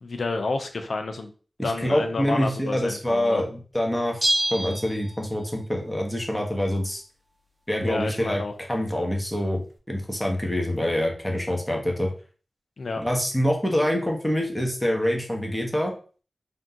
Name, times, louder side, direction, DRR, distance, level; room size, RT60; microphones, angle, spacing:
voice 1, 0.0-1.3 1.6-3.4 7.8-8.5 12.8-13.0, left 3 dB, 75° left, 6 dB, 0.6 m, -30 dB
voice 2, 1.6-7.0 7.7-8.4 8.7-12.1 13.0-15.9, equal, 10° left, 0 dB, 1.3 m, -26 dB
Bell, 4.2-5.6 5.9-6.0, right 1 dB, 15° right, 1.0 m, -27 dB
3.6 x 2.8 x 3.7 m, 0.39 s
cardioid pair, 40°, 0 cm